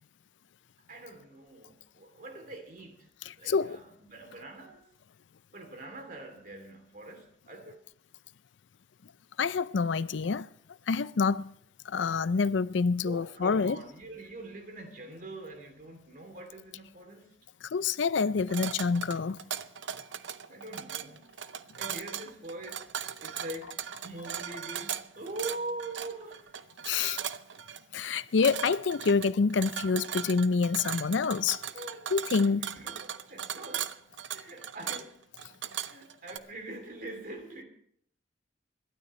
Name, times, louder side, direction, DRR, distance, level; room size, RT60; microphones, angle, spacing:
voice 1, 0.9-3.1 3.4-4.9 5.5-7.8 13.0-17.3 20.5-21.3 21.8-23.8 24.0-26.5 31.7-32.1 32.4-34.0 34.3-35.2 35.7-37.6, right 2 dB, 50° right, 3.0 m, -43 dB
voice 2, 3.3-3.8 9.4-10.5 10.9-11.5 11.9-13.8 17.7-19.4 26.9-27.2 27.9-31.6 32.1-32.6, left 5 dB, 80° left, 0.5 m, -27 dB
sound 1, 18.4-36.4, right 9 dB, 80° right, 0.6 m, -38 dB
27.0 x 12.5 x 3.2 m
head